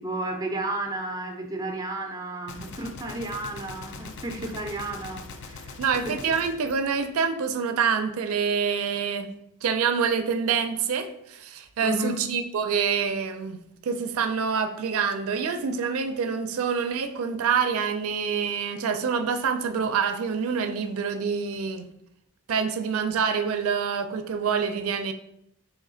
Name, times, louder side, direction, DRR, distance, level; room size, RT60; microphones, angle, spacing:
voice 1, 0.0-6.1 11.8-12.2, right 2 dB, 15° right, 3 dB, 0.4 m, -33 dB
Gunshot gunfire, 2.5-7.7, left 3 dB, 55° left, 0.4 m, -42 dB
voice 2, 5.8-9.3 9.6-13.6 13.8-21.9 22.5-25.1, right 6 dB, 85° right, 8 dB, 0.4 m, -26 dB
3.1 x 3.0 x 3.8 m, 0.77 s
head